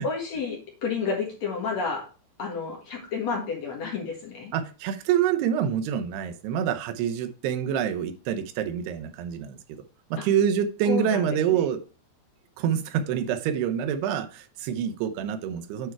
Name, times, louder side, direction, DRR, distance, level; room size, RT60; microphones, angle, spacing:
voice 1, 0.0-2.1 2.4-4.5 10.2-10.3 10.9-11.6, left 5 dB, 50° left, 0 dB, 2.5 m, -31 dB
voice 2, 4.5-9.6 10.1-11.8 12.6-15.9, right 9 dB, 85° right, 8 dB, 2.9 m, -26 dB
9.0 x 4.6 x 4.4 m, 0.35 s
omnidirectional pair, 4.6 m